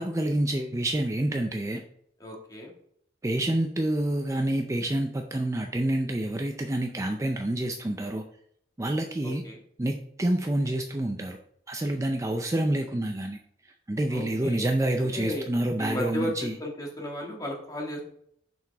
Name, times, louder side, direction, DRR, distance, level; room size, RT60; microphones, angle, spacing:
voice 1, 0.0-1.8 3.2-8.2 8.8-9.4 9.8-11.4 11.7-13.4 13.9-16.5, right 1 dB, 20° right, 4 dB, 0.5 m, -28 dB
voice 2, 2.2-2.7 9.2-9.6 14.1-14.7 15.0-15.5 15.8-16.3 16.6-18.0, left 1 dB, 20° left, -1 dB, 1.8 m, -34 dB
7.0 x 6.0 x 3.4 m, 0.68 s
head